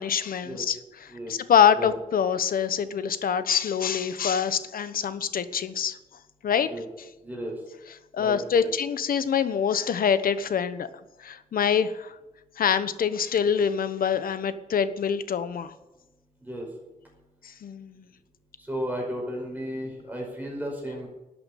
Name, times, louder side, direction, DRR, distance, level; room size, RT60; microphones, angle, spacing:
voice 1, 0.0-6.0 6.4-6.7 8.1-12.1 12.6-15.7 17.4-18.1, left 7 dB, 80° left, 13 dB, 1.0 m, -25 dB
voice 2, 7.2-7.6 8.2-8.7 16.4-16.7 18.6-21.1, equal, 10° right, -1 dB, 5.2 m, -34 dB
12.5 x 8.7 x 9.2 m, 1.0 s
wide cardioid pair, 120°, 15 cm